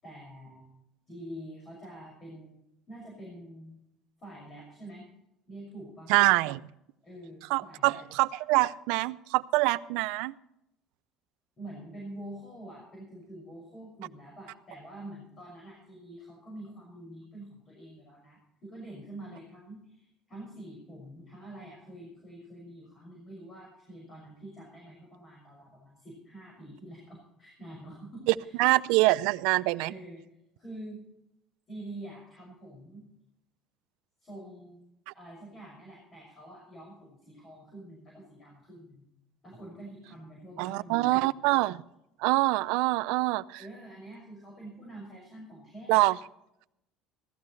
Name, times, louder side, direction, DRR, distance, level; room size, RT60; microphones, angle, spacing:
voice 1, 0.0-0.7 1.1-3.8 4.2-5.1 5.5-6.1 7.0-8.0 11.6-28.6 29.8-30.2 30.6-31.0 31.7-33.1 34.2-34.8 35.1-39.1 39.4-41.3 43.6-46.1, right 1 dB, 30° left, -2 dB, 6.1 m, -46 dB
voice 2, 6.1-6.6 7.5-10.3 28.6-29.9 40.6-41.8 42.2-43.6 45.9-46.2, right 21 dB, 80° right, 17 dB, 0.5 m, -25 dB
16.5 x 14.0 x 3.2 m, 0.83 s
cardioid pair, 140°, 0 cm